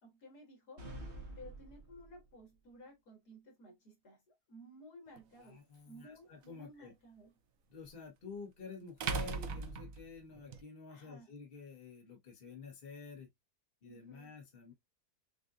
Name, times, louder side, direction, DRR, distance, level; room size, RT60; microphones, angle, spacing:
voice 1, 0.0-0.8 1.4-7.3 10.9-11.3 13.9-14.4, equal, 75° left, 2.6 m, -56 dB
sound 1, 0.8-2.4, right 1 dB, 50° right, 1.3 m, -48 dB
sound 2, 5.2-5.3 7.8-7.9 9.0-10.6, right 5 dB, 65° right, 1.1 m, -38 dB
voice 2, 5.4-6.9 7.7-13.3 13.8-14.7, left 5 dB, 35° left, 1.5 m, -50 dB
6.6 x 2.6 x 2.5 m
omnidirectional pair, 1.7 m